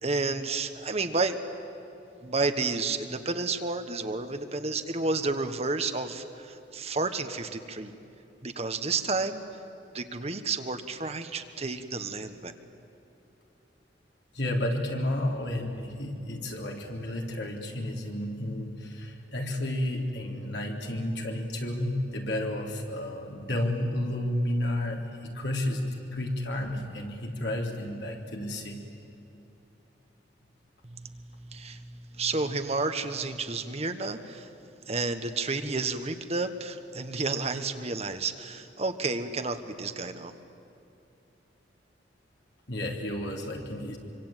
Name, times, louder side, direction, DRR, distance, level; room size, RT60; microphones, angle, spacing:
voice 1, 0.0-1.4 2.2-7.9 8.4-9.4 9.9-12.5 30.8-34.5 34.9-40.3, right 3 dB, 35° right, 8 dB, 1.2 m, -31 dB
voice 2, 14.3-25.8 26.1-28.8 42.7-44.0, left 1 dB, 70° left, 1 dB, 3.7 m, -31 dB
25.5 x 25.0 x 9.1 m, 2.8 s
head